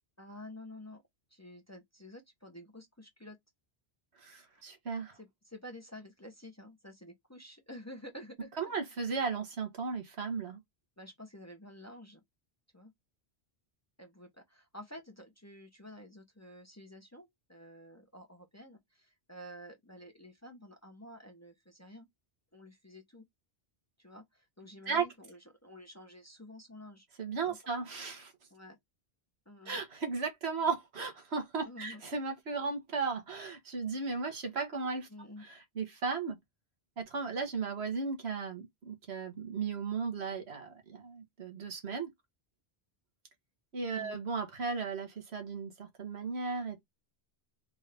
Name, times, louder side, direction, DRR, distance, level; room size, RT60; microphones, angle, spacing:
voice 1, 0.2-1.0 1.3-3.4 5.2-8.5 11.0-12.2 12.7-12.9 14.0-22.1 22.5-23.2 24.0-27.1 27.4-27.6 28.5-28.8 29.5-29.8 31.6-32.0 35.1-35.4 43.9-44.2, left 1 dB, 15° left, 0.9 m, -50 dB
voice 2, 4.2-5.2 8.6-10.6 24.9-25.0 27.2-28.3 29.6-35.1 35.4-36.4 37.0-42.1 43.7-46.8, right 5 dB, 75° right, 1.5 m, -35 dB
3.8 x 2.7 x 3.3 m
omnidirectional pair, 1.1 m